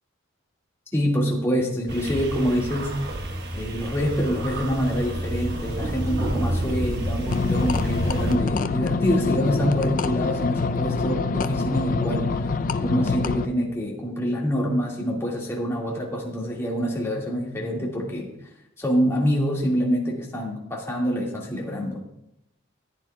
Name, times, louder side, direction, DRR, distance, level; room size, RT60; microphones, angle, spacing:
voice 1, 0.9-3.0 3.5-12.5 12.8-18.3 18.8-22.0, equal, 15° left, -3 dB, 1.8 m, -26 dB
sound 1, 1.9-8.4, right 1 dB, 55° right, 1.2 m, -29 dB
sound 2, 7.3-13.5, left 4 dB, 45° left, 0.4 m, -25 dB
14.5 x 9.3 x 2.2 m, 0.82 s
head